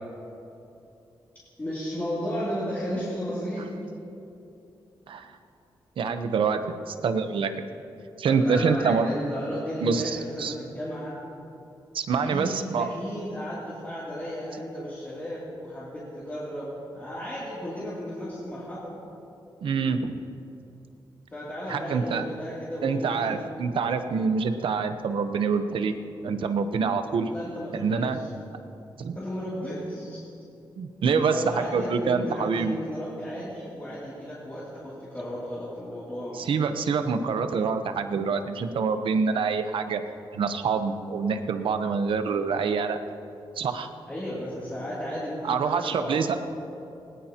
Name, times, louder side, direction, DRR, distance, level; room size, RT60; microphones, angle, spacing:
voice 1, 1.6-3.8 8.2-11.2 12.1-18.9 21.3-23.4 27.2-28.3 29.1-30.2 31.1-36.5 37.2-37.3 44.1-46.4, equal, 20° left, -9 dB, 2.8 m, -34 dB
voice 2, 6.0-7.5 8.2-9.1 9.8-10.5 11.9-12.9 14.8-14.9 19.6-20.1 21.7-22.3 22.8-25.9 26.2-27.3 27.7-28.2 29.0-29.2 30.8-32.7 36.5-40.0 40.3-43.0 43.6-43.9 45.4-46.4, right 5 dB, 85° right, 8 dB, 0.9 m, -26 dB
19.5 x 19.5 x 2.9 m, 2.8 s
wide cardioid pair, 175°, 9 cm